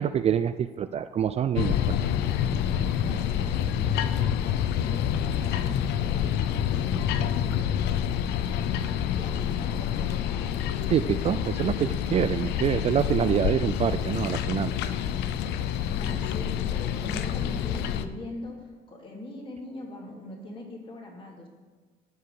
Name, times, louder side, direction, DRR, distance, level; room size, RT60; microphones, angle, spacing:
voice 1, 0.0-2.0 10.9-14.7, right 9 dB, 40° right, 12 dB, 0.4 m, -26 dB
sound 1, 1.6-18.1, left 9 dB, 85° left, 0.6 m, -27 dB
voice 2, 2.7-8.2 9.1-10.9 16.0-21.5, left 1 dB, 30° left, -1 dB, 2.6 m, -42 dB
12.0 x 4.8 x 6.8 m, 1.3 s
cardioid pair, 110°, 17 cm